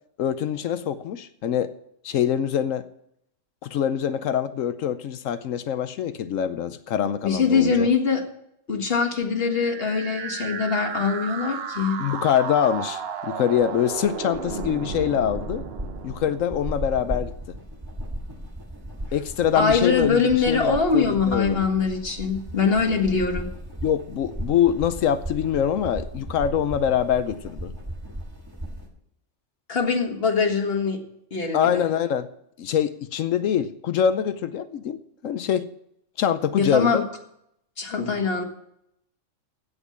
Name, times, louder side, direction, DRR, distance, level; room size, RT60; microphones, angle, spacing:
voice 1, 0.2-1.7 2.0-2.8 3.6-7.9 12.0-15.6 16.0-17.6 19.1-21.7 23.8-27.7 31.5-32.3 32.6-35.7 36.2-37.1, left 9 dB, 80° left, 12 dB, 1.1 m, -24 dB
voice 2, 7.2-8.2 8.7-12.0 19.6-23.5 29.7-31.0 31.3-31.8 36.6-37.0 37.8-38.4, left 5 dB, 50° left, 3 dB, 2.0 m, -23 dB
sound 1, 9.4-17.3, right 6 dB, 55° right, 1.0 m, -34 dB
sound 2, 13.6-28.9, right 1 dB, 15° right, 2.2 m, -36 dB
16.5 x 5.5 x 8.5 m, 0.75 s
omnidirectional pair, 1.3 m